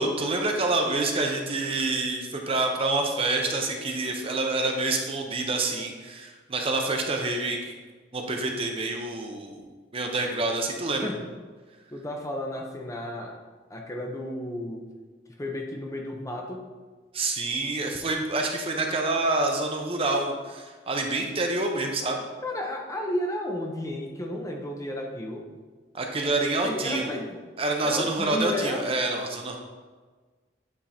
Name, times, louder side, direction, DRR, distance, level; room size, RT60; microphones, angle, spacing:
voice 1, 0.0-7.7 8.1-9.6 9.9-11.1 17.1-22.2 25.9-27.1 27.6-29.6, right 2 dB, 30° right, 2 dB, 0.7 m, -27 dB
voice 2, 11.9-13.4 13.7-14.9 15.4-16.6 22.4-25.5 26.4-27.4 27.8-28.8, left 1 dB, 20° left, 1 dB, 0.7 m, -32 dB
8.6 x 3.6 x 4.2 m, 1.4 s
head